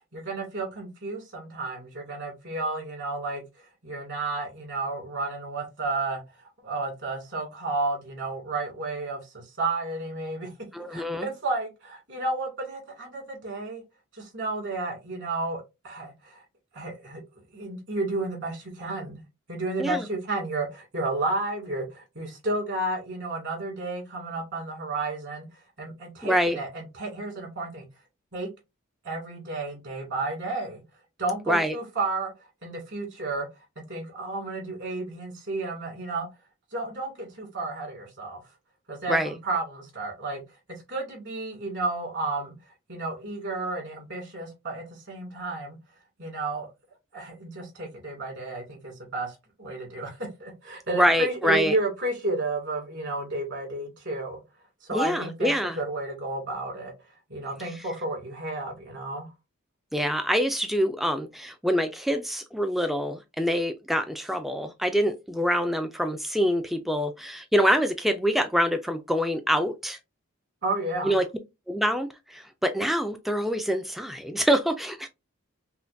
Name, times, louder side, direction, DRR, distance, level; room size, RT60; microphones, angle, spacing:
voice 1, 0.1-3.4 3.8-10.5 10.9-13.8 14.1-16.4 16.7-17.2 17.5-19.2 19.5-25.5 25.8-27.9 28.3-28.5 29.0-30.8 31.2-32.3 32.6-33.5 33.8-36.3 36.7-38.4 38.9-39.2 39.4-40.4 40.7-42.5 42.9-45.8 46.2-46.7 47.1-54.4 54.8-56.9 57.3-59.3 70.6-71.1, right 2 dB, 55° right, 2.2 m, -32 dB
voice 2, 10.7-11.3 19.8-20.0 26.2-26.6 31.5-31.8 39.1-39.3 51.0-51.8 54.9-55.8 59.9-70.0 71.0-71.2 71.7-75.1, equal, ahead, 0.3 m, -25 dB
5.6 x 2.2 x 2.5 m
head